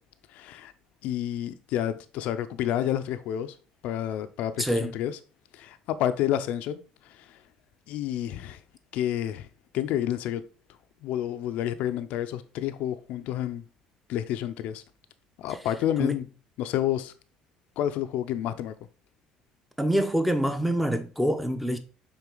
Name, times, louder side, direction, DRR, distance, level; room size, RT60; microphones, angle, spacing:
voice 1, 0.3-0.7 1.0-3.5 3.8-5.2 5.5-6.8 7.1-7.4 7.9-8.6 8.9-9.5 9.7-10.4 11.0-13.6 14.1-14.8 15.4-16.3 16.6-17.1 17.8-18.7, left 11 dB, 75° left, 0.6 m, -29 dB
voice 2, 4.6-4.9 16.0-16.1 19.8-21.8, equal, ahead, 0.9 m, -25 dB
5.8 x 4.2 x 3.9 m
supercardioid pair, 90°, 2 cm